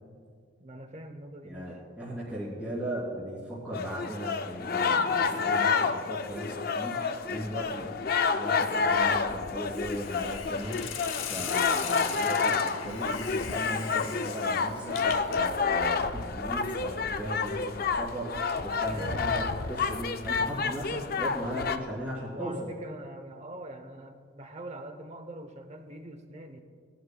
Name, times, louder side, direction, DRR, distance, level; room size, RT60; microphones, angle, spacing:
voice 1, 0.6-1.8 18.9-19.5 22.2-26.6, right 1 dB, 35° right, 7 dB, 0.8 m, -43 dB
voice 2, 1.4-8.0 8.3-10.8 11.3-22.5, right 1 dB, 5° right, -9 dB, 2.9 m, -37 dB
sound 1, 3.7-21.8, left 5 dB, 45° left, 0.4 m, -29 dB
Hiss, 9.7-15.5, left 8 dB, 80° left, 0.8 m, -39 dB
20.0 x 11.5 x 2.3 m, 2.2 s
head